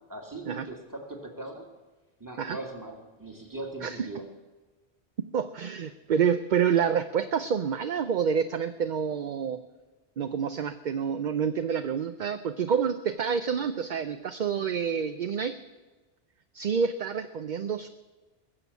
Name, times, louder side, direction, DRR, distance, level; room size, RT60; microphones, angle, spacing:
voice 1, 0.0-1.7 2.2-4.3, right 2 dB, 20° right, 2 dB, 1.9 m, -40 dB
voice 2, 5.3-9.6 10.2-15.6 16.5-17.9, right 7 dB, 55° right, 10 dB, 0.6 m, -28 dB
20.5 x 7.1 x 8.2 m, 1.2 s
omnidirectional pair, 1.1 m